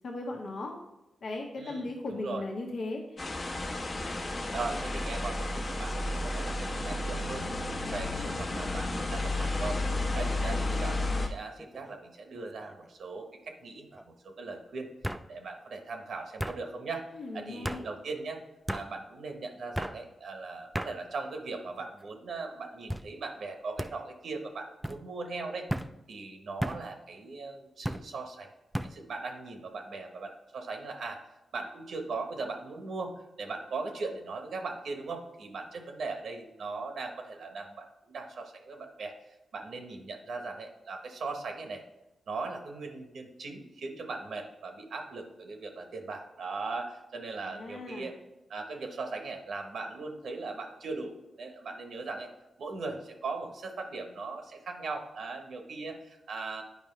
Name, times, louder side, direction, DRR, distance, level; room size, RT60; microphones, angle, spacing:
voice 1, 0.0-0.7 1.2-3.3 17.1-17.8 47.5-48.1, left 2 dB, 70° left, 0 dB, 1.2 m, -37 dB
voice 2, 1.6-2.4 4.5-7.4 7.9-9.8 10.1-14.9 15.3-17.0 17.3-18.4 18.7-25.7 26.1-28.5 28.8-31.2 31.5-39.1 39.5-41.8 42.3-48.1 48.5-52.3 52.6-56.6, right 3 dB, 75° right, 4 dB, 1.2 m, -39 dB
sound 1, 3.2-11.3, left 2 dB, 45° left, 1.1 m, -32 dB
sound 2, 11.6-12.0 12.4-12.9 14.0-14.1 15.0-15.3 16.4-16.6 17.6-17.8 18.7-18.9 19.7-20.0 20.7-20.9 21.7-22.1 22.9-23.1 23.8-23.9 24.8-25.0 25.7-25.9 26.6-26.8 27.8-28.0 28.7-28.9, equal, 5° right, 0.4 m, -34 dB
9.6 x 5.0 x 3.3 m, 0.96 s
cardioid pair, 70°, 0 cm